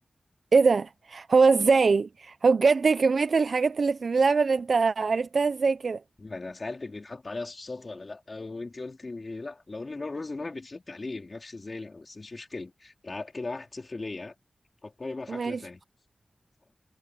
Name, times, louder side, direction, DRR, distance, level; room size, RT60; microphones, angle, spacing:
voice 1, 0.5-6.0 15.3-15.6, right 4 dB, 75° right, 0.5 m, -22 dB
voice 2, 6.2-14.3 14.8-15.8, left 3 dB, 50° left, 4.0 m, -38 dB
cardioid pair, 50°, 0 cm